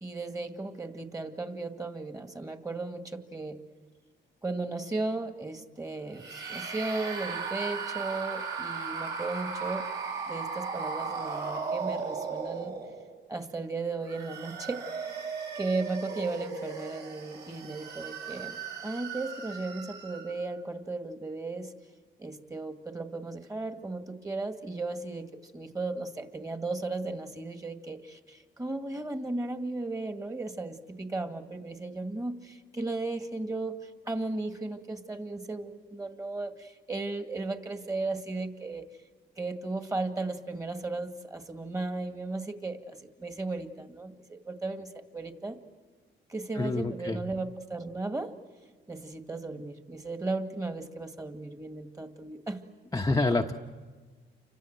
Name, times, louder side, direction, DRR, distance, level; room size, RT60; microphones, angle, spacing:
voice 1, 0.0-3.6 4.4-9.9 10.3-12.7 13.3-14.8 15.5-21.7 22.2-38.9 39.4-45.6 46.3-48.3 48.9-52.6, right 3 dB, 15° right, 7 dB, 2.1 m, -35 dB
sound 1, 6.1-13.2 13.9-20.4, right 5 dB, 60° right, 6.7 m, -37 dB
voice 2, 46.6-47.2 52.9-53.5, left 2 dB, 15° left, 2 dB, 1.0 m, -27 dB
29.0 x 25.5 x 7.9 m, 1.4 s
cardioid pair, 90°, 20 cm